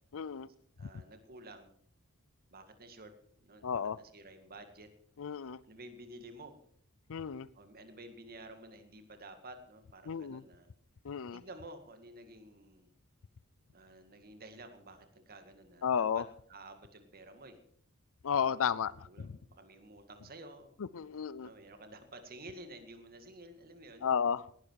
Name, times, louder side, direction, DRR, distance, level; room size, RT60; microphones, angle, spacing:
voice 1, 0.1-0.5 3.6-4.0 5.2-5.6 7.1-7.5 10.1-10.4 11.0-11.4 15.8-16.3 18.2-19.3 20.9-21.5 24.0-24.5, left 7 dB, 65° left, 19 dB, 0.5 m, -33 dB
voice 2, 0.8-1.7 2.5-3.1 3.4-4.9 5.6-6.5 7.5-10.7 11.3-12.9 13.7-16.2 16.5-17.6 18.4-18.7 19.1-20.7 21.4-24.1, right 2 dB, 45° right, 7 dB, 2.0 m, -51 dB
18.5 x 11.5 x 4.7 m, 0.63 s
head